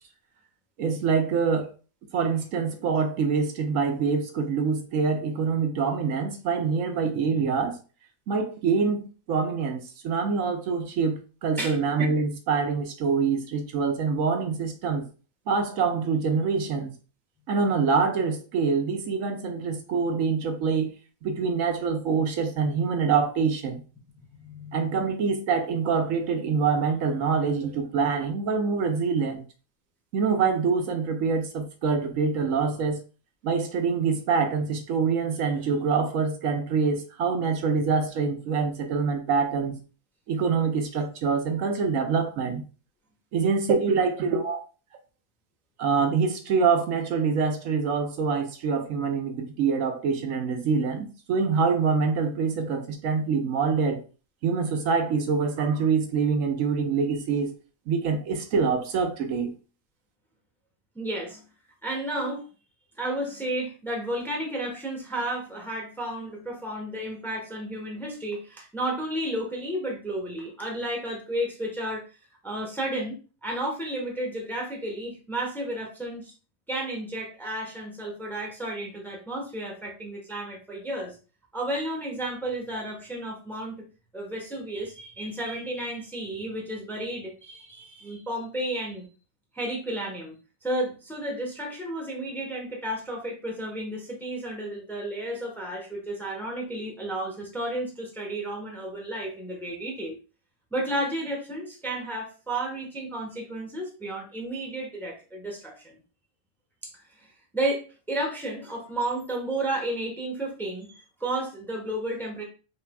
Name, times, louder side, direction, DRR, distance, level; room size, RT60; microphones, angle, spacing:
voice 1, 0.8-1.7 2.1-7.8 8.3-15.1 15.5-16.9 17.5-20.9 21.2-23.8 24.7-29.4 30.1-33.0 33.4-39.8 40.3-42.6 43.3-44.6 45.8-54.0 54.4-57.5 57.9-59.6, right 5 dB, 75° right, 1.0 m, -25 dB
voice 2, 24.3-25.1 60.9-61.4 61.8-62.4 63.0-72.1 72.4-76.3 76.7-81.2 81.5-83.9 84.1-89.1 89.5-90.4 90.6-100.2 100.7-106.0 106.8-112.4, right 1 dB, ahead, 0.9 m, -32 dB
5.6 x 3.3 x 2.2 m
omnidirectional pair, 1.4 m